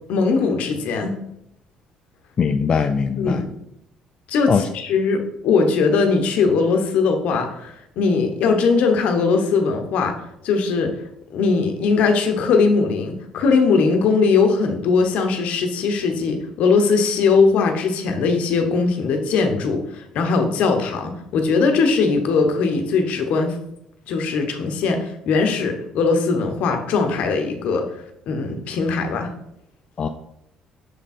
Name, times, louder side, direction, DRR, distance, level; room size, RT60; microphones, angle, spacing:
voice 1, 0.1-1.2 3.2-3.5 4.3-10.1 10.4-10.9 11.3-23.6 24.1-27.9 28.3-29.3, left 4 dB, 70° left, 5 dB, 1.0 m, -20 dB
voice 2, 2.4-3.4 4.5-4.7 30.0-30.1, left 6 dB, 40° left, 6 dB, 0.4 m, -20 dB
6.5 x 3.6 x 4.2 m, 0.78 s
cardioid pair, 90°, 2 cm